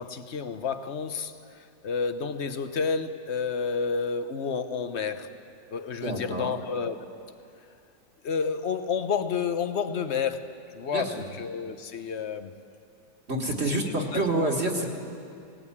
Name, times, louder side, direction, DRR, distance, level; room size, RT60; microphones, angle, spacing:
voice 1, 0.0-5.4 5.7-7.0 8.2-12.5 13.6-14.5, left 5 dB, 50° left, 0.9 m, -30 dB
voice 2, 6.0-6.5 10.9-11.2 13.3-14.9, right 2 dB, 35° right, 2.0 m, -28 dB
19.5 x 18.5 x 8.6 m
omnidirectional pair, 1.9 m